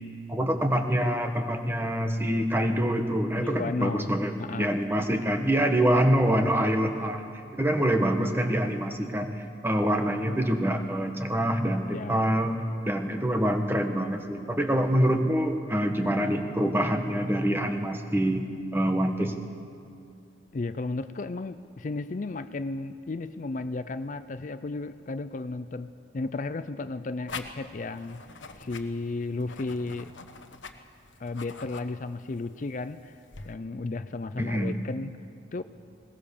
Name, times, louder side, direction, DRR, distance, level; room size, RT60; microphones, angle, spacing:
voice 1, 0.3-4.3 4.6-12.5 12.9-18.5 18.7-19.3 34.4-34.8, equal, 10° right, 5 dB, 1.3 m, -25 dB
voice 2, 3.3-4.1 4.4-4.8 11.9-12.3 20.5-28.2 28.6-30.1 31.2-33.2 33.4-35.1 35.5-35.6, left 3 dB, 45° left, 12 dB, 0.4 m, -34 dB
sound 1, 27.3-33.5, left 4 dB, 90° left, 1.2 m, -45 dB
21.0 x 18.5 x 7.0 m, 2.3 s
head